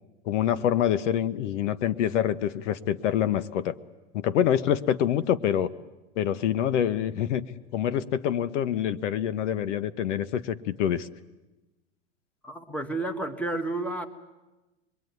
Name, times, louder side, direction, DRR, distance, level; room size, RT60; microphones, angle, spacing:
voice 1, 0.2-3.7 4.1-5.7 6.2-7.4 7.7-11.1, left 10 dB, 75° left, 15 dB, 1.2 m, -26 dB
voice 2, 12.4-14.1, right 2 dB, 5° left, 8 dB, 1.6 m, -31 dB
27.0 x 22.0 x 9.5 m, 1.1 s
supercardioid pair, 140°, 36 cm